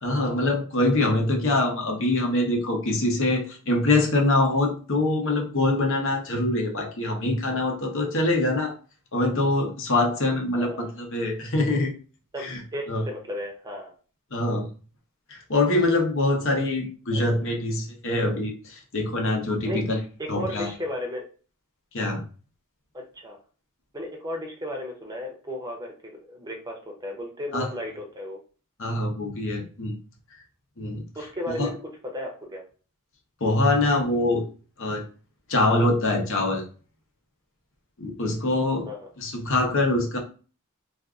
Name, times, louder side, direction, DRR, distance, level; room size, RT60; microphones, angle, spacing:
voice 1, 0.0-8.7 9.1-11.9 12.4-12.6 12.9-13.0 14.3-14.7 15.3-20.0 20.3-20.7 21.9-22.2 27.5-27.7 28.8-29.9 30.8-31.0 31.6-31.7 33.4-34.4 34.8-35.0 35.5-36.6 38.0-38.9 39.2-40.2, left 2 dB, 60° left, 1 dB, 0.9 m, -24 dB
voice 2, 10.5-10.9 12.3-13.9 17.1-17.2 19.6-19.9 20.2-21.2 22.9-23.4 23.9-28.4 31.1-31.8 32.1-32.6 38.9-39.1, left 1 dB, 20° right, 1 dB, 0.7 m, -34 dB
2.6 x 2.4 x 3.5 m, 0.37 s
head